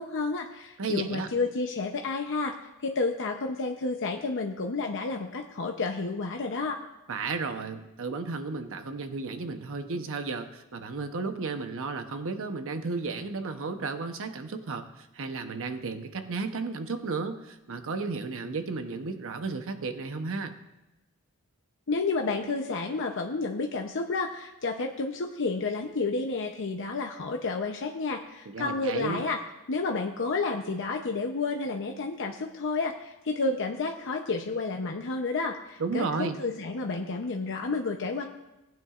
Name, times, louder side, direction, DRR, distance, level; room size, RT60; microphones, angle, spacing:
voice 1, 0.0-2.5 2.8-6.8 21.9-29.4 29.7-38.3, left 3 dB, 55° left, 3 dB, 0.7 m, -30 dB
voice 2, 0.8-1.3 7.1-20.5 28.5-29.2 35.8-36.4, right 4 dB, 65° right, 7 dB, 0.9 m, -33 dB
18.5 x 9.2 x 2.5 m, 1.0 s
head